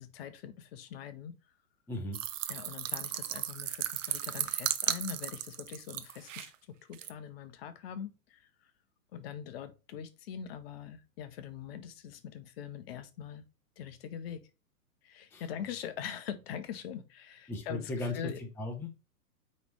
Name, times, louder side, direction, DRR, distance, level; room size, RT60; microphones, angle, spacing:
voice 1, 0.0-1.3 2.5-8.5 9.1-13.4 13.8-14.4 15.0-18.4, left 8 dB, 40° left, 0.8 m, -43 dB
voice 2, 1.9-2.2 15.3-15.5 17.5-18.9, left 2 dB, 5° left, 0.6 m, -37 dB
sound 1, 2.1-6.5 6.9-7.1, right 12 dB, 55° right, 0.8 m, -35 dB
9.0 x 3.2 x 3.3 m
hypercardioid pair, 125°, 45 cm